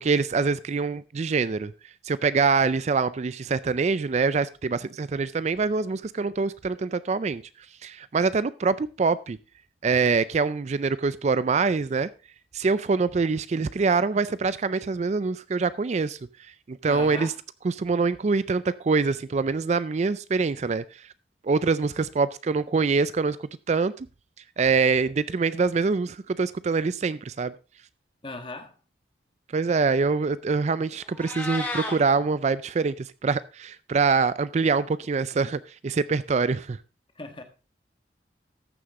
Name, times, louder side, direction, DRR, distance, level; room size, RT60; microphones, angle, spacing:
voice 1, 0.0-1.7 2.0-7.4 7.8-9.4 9.8-12.1 12.5-16.2 16.7-17.3 17.6-21.0 21.4-23.4 23.7-24.1 24.6-27.5 29.5-36.8, right 4 dB, 40° right, 0.4 m, -24 dB
voice 2, 16.9-17.3 28.2-28.8 37.1-37.4, left 2 dB, 30° left, 1.5 m, -37 dB
Meow, 31.0-32.0, left 1 dB, 10° left, 2.5 m, -32 dB
14.0 x 6.4 x 3.7 m
head